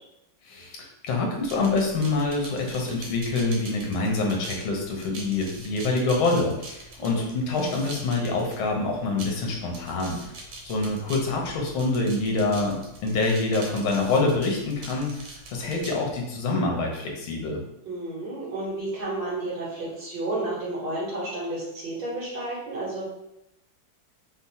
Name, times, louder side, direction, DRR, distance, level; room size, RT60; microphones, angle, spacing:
voice 1, 0.5-17.6, left 3 dB, 90° left, 0 dB, 1.8 m, -26 dB
sound 1, 1.4-16.2, right 2 dB, 80° right, 1.7 m, -43 dB
voice 2, 17.9-23.0, right 2 dB, 65° right, -6 dB, 2.2 m, -31 dB
5.0 x 2.1 x 4.1 m, 0.84 s
omnidirectional pair, 2.2 m